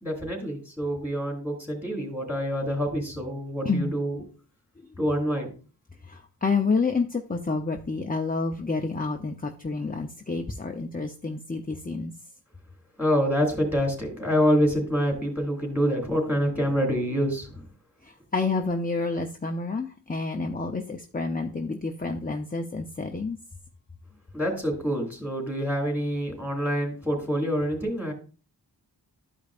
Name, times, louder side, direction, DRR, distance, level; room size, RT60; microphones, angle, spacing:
voice 1, 0.0-4.2 5.0-5.5 13.0-17.6 24.3-28.1, equal, 5° right, 1 dB, 3.2 m, -26 dB
voice 2, 6.0-12.1 18.0-23.4, left 4 dB, 20° left, 4 dB, 0.6 m, -29 dB
13.0 x 5.2 x 2.5 m, 0.36 s
wide cardioid pair, 75°, 42 cm